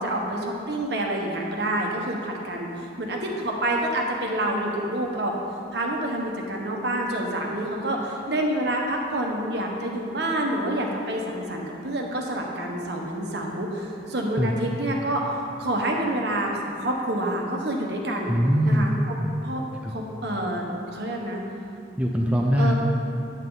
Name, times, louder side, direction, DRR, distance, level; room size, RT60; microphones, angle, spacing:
voice 1, 0.0-5.3 5.7-18.3 18.6-18.9 19.4-19.6 19.9-21.4 22.6-22.7, right 1 dB, 60° right, 0 dB, 1.1 m, -28 dB
voice 2, 18.3-19.0 19.8-20.0 22.0-22.7, equal, 5° right, -1 dB, 0.5 m, -22 dB
9.1 x 8.2 x 3.9 m, 2.7 s
head